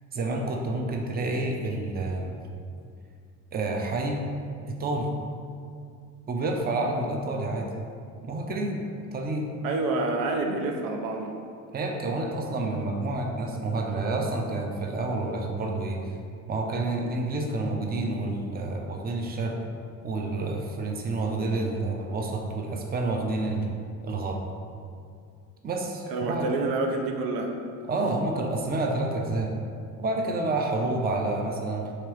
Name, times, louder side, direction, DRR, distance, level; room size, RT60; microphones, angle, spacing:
voice 1, 0.1-2.3 3.5-4.2 4.7-5.1 6.3-7.7 8.2-8.8 9.1-9.5 11.7-16.2 16.5-19.6 20.0-23.7 24.0-24.4 25.6-26.5 27.9-29.5 30.0-31.9, right 2 dB, 30° right, 1 dB, 0.6 m, -29 dB
voice 2, 9.6-11.3 26.1-27.5, right 3 dB, 80° right, 3 dB, 0.6 m, -28 dB
3.8 x 2.9 x 4.7 m, 2.3 s
cardioid pair, 100°, 34 cm